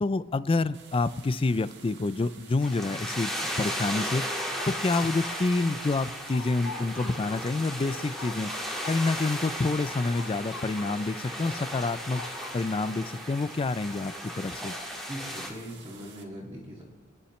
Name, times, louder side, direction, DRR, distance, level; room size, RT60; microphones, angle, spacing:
voice 1, 0.0-4.3 4.7-8.5 8.9-12.2 12.5-14.7, left 3 dB, 25° left, 16 dB, 0.4 m, -28 dB
sound 1, 0.7-16.2, right 6 dB, 55° right, 1.5 m, -52 dB
sound 2, 2.6-15.5, equal, ahead, 2.0 m, -36 dB
sound 3, 3.3-5.6 5.9-11.2 11.5-13.2, left 5 dB, 75° left, 0.6 m, -46 dB
voice 2, 15.1-16.8, equal, 20° right, -6 dB, 2.2 m, -40 dB
28.0 x 10.0 x 3.2 m, 1.3 s
head